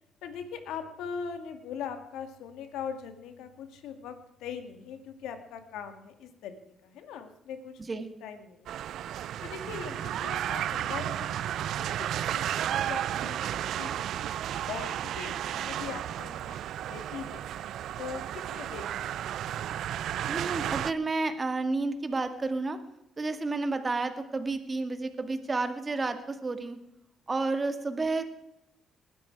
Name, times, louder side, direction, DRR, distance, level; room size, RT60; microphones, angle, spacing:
voice 1, 0.2-7.8 8.2-8.8 9.4-11.5 11.8-14.1 14.7-16.6 16.9-17.4 18.0-19.1, left 7 dB, 90° left, 8 dB, 2.2 m, -41 dB
sound 1, 8.7-20.9, right 11 dB, 75° right, 0.5 m, -33 dB
voice 2, 20.3-22.8 23.2-26.8 27.3-28.2, right 3 dB, 30° right, 8 dB, 2.1 m, -31 dB
20.0 x 12.5 x 4.8 m, 0.85 s
cardioid pair, 90°, 0 cm